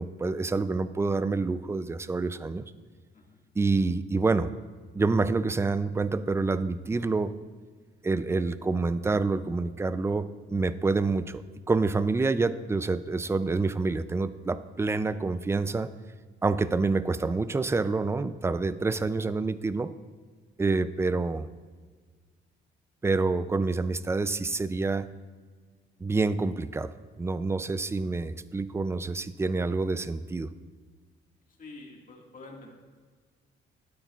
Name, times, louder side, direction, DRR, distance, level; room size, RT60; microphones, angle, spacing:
voice 1, 0.0-2.7 3.6-4.5 4.9-7.3 8.0-15.9 16.4-19.9 20.6-21.5 23.0-25.1 26.0-30.5, right 3 dB, 15° right, 14 dB, 0.3 m, -27 dB
voice 2, 31.6-32.7, left 2 dB, 45° left, 0 dB, 1.9 m, -47 dB
12.5 x 9.2 x 2.4 m, 1.5 s
cardioid pair, 90°, 20 cm